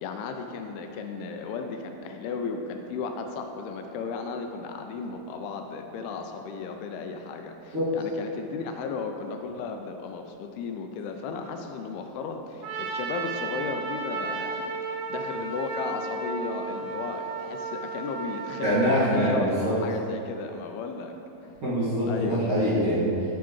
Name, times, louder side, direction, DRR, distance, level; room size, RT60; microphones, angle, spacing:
voice 1, 0.0-21.1 22.1-22.4, left 4 dB, 85° left, 5 dB, 2.4 m, -35 dB
Trumpet, 12.6-19.2, right 4 dB, 85° right, 2.8 m, -34 dB
voice 2, 18.6-19.8 21.6-23.1, equal, 45° right, -12 dB, 2.0 m, -24 dB
10.5 x 5.9 x 3.1 m, 2.8 s
omnidirectional pair, 4.5 m